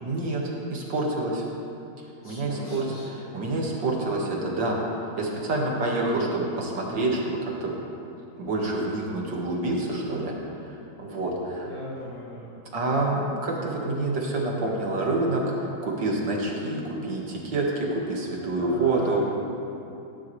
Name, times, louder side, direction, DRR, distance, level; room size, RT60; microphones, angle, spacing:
voice 1, 0.0-1.4 2.2-2.8 3.3-4.8 5.2-7.7 8.4-10.4 11.0-11.7 12.7-15.4 15.8-19.2, right 2 dB, 60° right, -2 dB, 2.4 m, -27 dB
voice 2, 2.2-3.0 5.8-6.2 11.4-12.5 18.6-19.3, left 1 dB, 75° left, -12 dB, 3.7 m, -39 dB
17.5 x 11.0 x 3.2 m, 2.8 s
omnidirectional pair, 2.2 m